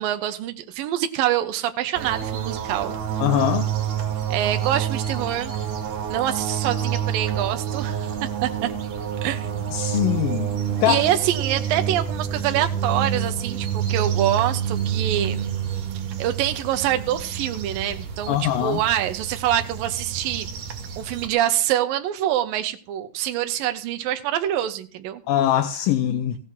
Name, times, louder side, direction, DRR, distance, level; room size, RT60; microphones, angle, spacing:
voice 1, 0.0-3.0 4.3-5.5 6.1-8.7 9.2-10.0 10.9-15.9 16.2-20.5 21.0-25.2, right 12 dB, 80° right, 2.7 m, -25 dB
sound 1, 2.0-21.3, right 9 dB, 65° right, 3.4 m, -28 dB
voice 2, 3.2-3.7 9.7-10.5 10.8-11.0 18.3-18.8 25.3-26.4, left 12 dB, 75° left, 2.5 m, -22 dB
16.0 x 8.0 x 6.0 m
omnidirectional pair, 4.1 m